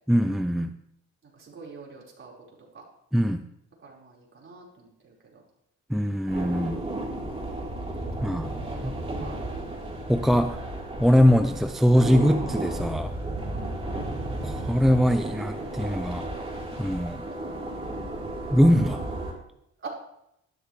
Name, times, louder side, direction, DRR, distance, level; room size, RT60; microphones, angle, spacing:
voice 1, 0.1-0.7 3.1-3.4 5.9-6.8 8.2-8.5 8.8-8.9 10.1-10.6 11.0-13.1 14.4-16.3 16.8-17.2 18.5-19.0, equal, ahead, 8 dB, 0.5 m, -22 dB
voice 2, 1.3-2.4 2.7-2.8 3.8-5.4 8.6-9.6 13.5-14.1 17.2-17.9 19.8-19.9, right 4 dB, 40° right, -4 dB, 4.7 m, -45 dB
sound 1, 6.3-19.3, right 1 dB, 20° right, 3.8 m, -33 dB
12.5 x 12.0 x 3.3 m, 0.79 s
cardioid pair, 90°, 30 cm